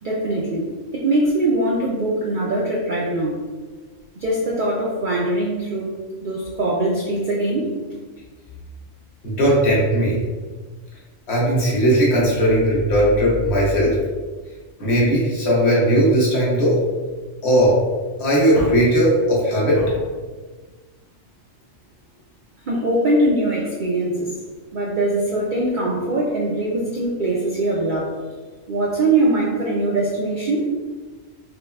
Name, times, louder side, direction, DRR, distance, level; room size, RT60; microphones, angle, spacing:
voice 1, 0.0-3.5 4.2-7.7 22.7-24.3 24.7-28.1 28.7-30.7, right 2 dB, 60° right, -4 dB, 0.5 m, -22 dB
voice 2, 9.2-10.2 11.3-14.0 14.8-16.8 17.4-17.8 18.2-20.0, equal, 55° left, -5 dB, 1.3 m, -17 dB
5.5 x 2.2 x 2.2 m, 1.4 s
omnidirectional pair, 1.3 m